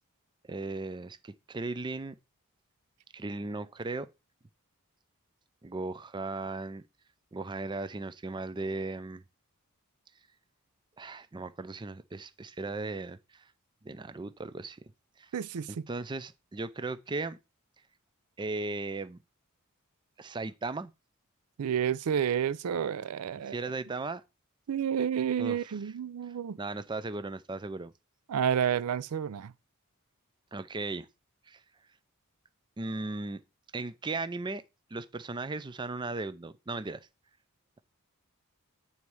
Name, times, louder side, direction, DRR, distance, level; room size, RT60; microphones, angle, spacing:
voice 1, 0.5-2.2 3.1-4.1 5.6-6.8 7.3-9.2 11.0-13.5 13.8-14.8 15.2-15.3 15.7-17.4 18.4-19.2 20.2-20.9 23.5-24.2 25.4-25.6 26.3-27.9 30.5-31.1 31.5-31.6 32.8-33.4 33.7-34.6 34.9-37.1, right 3 dB, 20° right, 0.4 m, -37 dB
voice 2, 15.3-15.9 21.6-23.6 24.7-26.6 28.3-29.5, right 8 dB, 80° right, 0.4 m, -30 dB
8.8 x 4.2 x 4.7 m
head